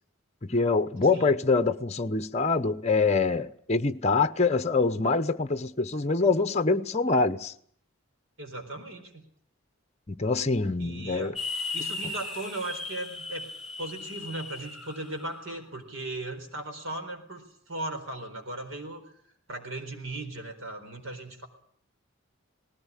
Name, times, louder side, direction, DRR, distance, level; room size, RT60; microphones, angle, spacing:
voice 1, 0.4-7.5 10.1-11.3, left 3 dB, 30° left, 0.9 m, -25 dB
voice 2, 8.4-9.2 10.8-11.3 11.7-13.5 13.8-19.0 19.5-21.5, right 2 dB, 65° right, 4.3 m, -37 dB
sound 1, 11.4-15.5, left 3 dB, ahead, 2.4 m, -37 dB
19.5 x 17.5 x 9.9 m
head